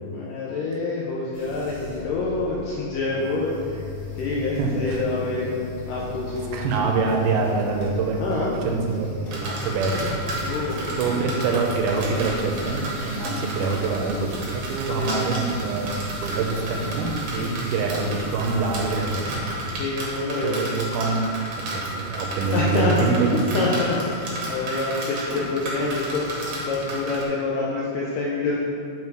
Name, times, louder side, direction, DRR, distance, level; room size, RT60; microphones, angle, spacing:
voice 1, 0.1-3.8 4.2-6.6 8.2-8.6 10.4-10.9 13.2-13.5 15.0-15.3 17.4-17.6 19.8-20.6 22.5-22.9 23.5-28.6, left 3 dB, 80° left, -4 dB, 2.0 m, -27 dB
sound 1, 1.3-19.8, left 3 dB, 40° right, 1.3 m, -37 dB
sound 2, 4.0-19.5, equal, 60° left, 2.1 m, -42 dB
voice 2, 4.6-5.1 6.5-10.2 10.6-19.5 20.4-21.3 21.7-23.6 25.2-25.5, right 4 dB, 80° right, 1 dB, 2.5 m, -25 dB
sound 3, 9.3-27.2, right 1 dB, 60° right, 2.1 m, -32 dB
5.8 x 5.5 x 4.6 m, 2.3 s
omnidirectional pair, 4.6 m